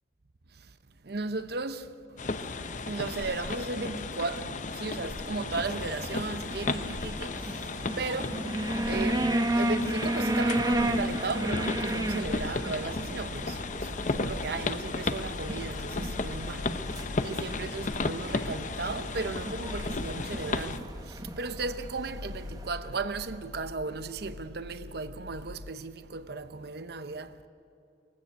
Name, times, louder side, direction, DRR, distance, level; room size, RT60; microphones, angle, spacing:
voice 1, 1.0-1.9 2.9-7.7 8.0-8.4 8.9-27.3, right 3 dB, 55° right, 0.8 m, -36 dB
sound 1, 2.2-20.8, left 3 dB, 40° left, 0.7 m, -34 dB
sound 2, 5.5-22.7, right 1 dB, 20° right, 1.0 m, -33 dB
sound 3, 11.5-25.7, left 3 dB, 80° left, 0.7 m, -46 dB
20.0 x 15.5 x 9.1 m
head